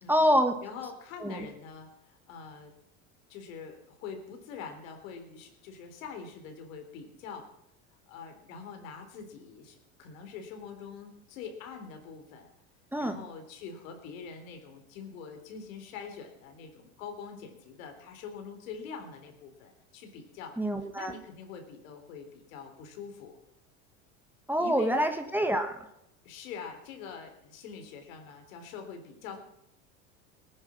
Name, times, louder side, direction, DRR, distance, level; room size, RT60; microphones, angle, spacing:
voice 1, 0.1-0.6 1.2-1.4 12.9-13.2 20.6-21.1 24.5-25.8, equal, 5° right, 6 dB, 1.6 m, -26 dB
voice 2, 0.6-2.7 3.3-7.5 8.1-12.5 13.0-23.4 24.6-25.0 26.2-29.4, left 6 dB, 75° left, 5 dB, 3.6 m, -44 dB
19.5 x 10.0 x 6.0 m, 0.81 s
hypercardioid pair, 90°, 41 cm